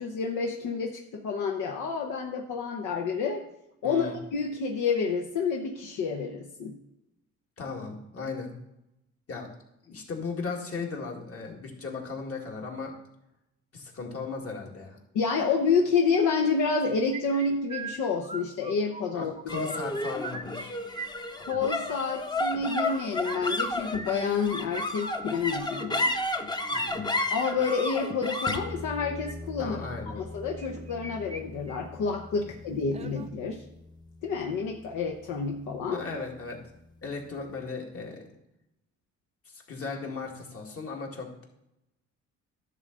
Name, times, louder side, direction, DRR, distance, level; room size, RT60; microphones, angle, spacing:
voice 1, 0.0-3.4 3.8-6.8 15.1-19.8 21.4-26.1 27.3-29.8 30.2-33.6 34.2-36.0, left 5 dB, 85° left, 2 dB, 0.9 m, -29 dB
voice 2, 3.8-4.2 7.6-8.5 9.3-9.5 9.8-12.9 13.7-15.0 19.1-20.7 26.7-27.1 29.6-30.2 35.9-36.6 37.0-38.2 39.5-41.4, left 4 dB, 50° left, 0 dB, 2.1 m, -36 dB
sound 1, 17.1-19.0 19.4-20.7 20.9-22.0 22.6-28.3 29.0-29.3 30.6-31.4 31.7-31.8 32.2-32.3 32.9-33.3, right 3 dB, 20° right, 0.7 m, -41 dB
sound 2, 19.5-36.0, left 2 dB, 15° left, 0.7 m, -34 dB
11.0 x 3.9 x 6.7 m, 0.86 s
cardioid pair, 90°, 30 cm